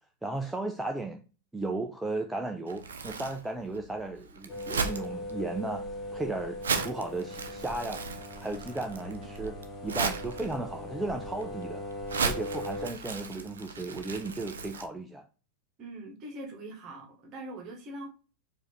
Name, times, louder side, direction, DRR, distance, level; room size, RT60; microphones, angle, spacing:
voice 1, 0.2-1.2 1.5-5.9 6.1-8.0 8.4-9.6 9.8-11.8 12.2-15.2, right 2 dB, 5° right, 0.4 m, -35 dB
Crumpling crinkling, 2.7-14.8, right 5 dB, 70° right, 0.5 m, -36 dB
sound 1, 4.5-12.9, left 1 dB, 25° left, 1.1 m, -39 dB
voice 2, 15.8-18.1, right 1 dB, 35° right, 1.3 m, -42 dB
4.6 x 2.6 x 3.2 m
figure-of-eight pair, 90°, 0 cm